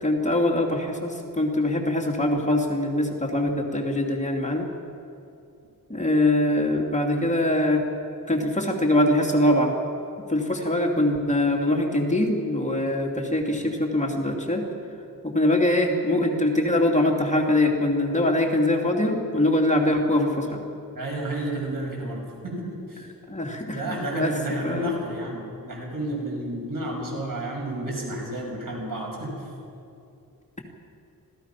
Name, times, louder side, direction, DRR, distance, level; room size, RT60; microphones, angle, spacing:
voice 1, 0.0-4.7 5.9-7.8 8.3-9.8 10.3-14.7 15.2-20.6 23.3-25.0, left 1 dB, 20° left, 0 dB, 2.7 m, -23 dB
voice 2, 20.9-23.1 23.7-29.5, right 1 dB, 65° right, -1 dB, 6.7 m, -31 dB
26.5 x 17.0 x 5.9 m, 2.6 s
wide cardioid pair, 75°, 36 cm